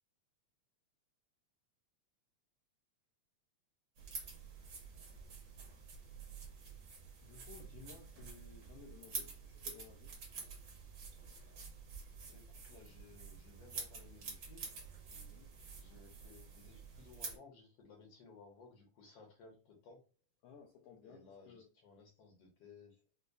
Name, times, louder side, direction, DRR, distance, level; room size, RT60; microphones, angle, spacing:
sound 1, 4.0-17.4, right 4 dB, 60° right, 1.2 m, -49 dB
voice 1, 7.2-10.1 15.1-15.5 20.4-21.7, left 6 dB, 85° left, 1.4 m, -57 dB
voice 2, 12.3-14.7 15.7-20.1 21.0-23.1, left 4 dB, 65° left, 1.7 m, -59 dB
5.2 x 2.1 x 2.2 m
omnidirectional pair, 3.4 m